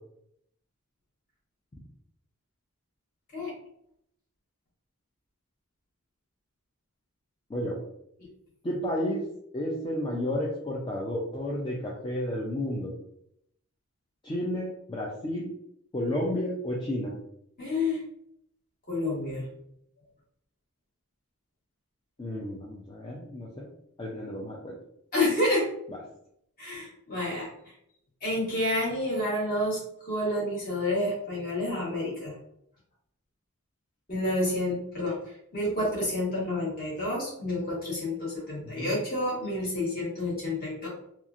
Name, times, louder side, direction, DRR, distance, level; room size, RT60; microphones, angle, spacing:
voice 1, 8.6-9.2 9.5-12.9 14.2-15.5 15.9-17.2 22.2-23.7 24.0-24.8 27.3-27.4 38.6-39.0, left 1 dB, 20° left, -4 dB, 0.3 m, -32 dB
voice 2, 17.6-18.0 18.9-19.4 25.1-25.7 26.6-27.5 28.2-32.3 34.1-35.2 35.5-40.9, left 1 dB, 40° left, -6 dB, 1.3 m, -29 dB
2.9 x 2.3 x 2.4 m, 0.74 s
head